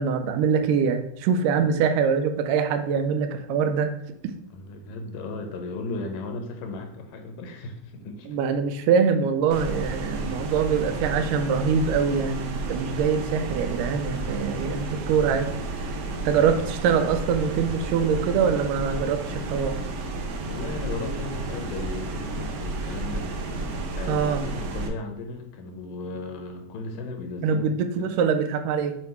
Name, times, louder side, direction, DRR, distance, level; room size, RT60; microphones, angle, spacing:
voice 1, 0.0-3.9 4.2-4.3 8.3-15.5 16.3-19.8 24.1-24.4 27.4-29.0, right 6 dB, 85° right, 7 dB, 2.2 m, -24 dB
voice 2, 4.5-8.4 16.4-16.8 20.5-23.3 24.0-27.7 28.0-28.1, left 3 dB, 90° left, 5 dB, 2.6 m, -36 dB
sound 1, 9.5-24.9, right 2 dB, 70° right, 1.7 m, -32 dB
7.5 x 3.2 x 4.4 m, 0.77 s
omnidirectional pair, 3.8 m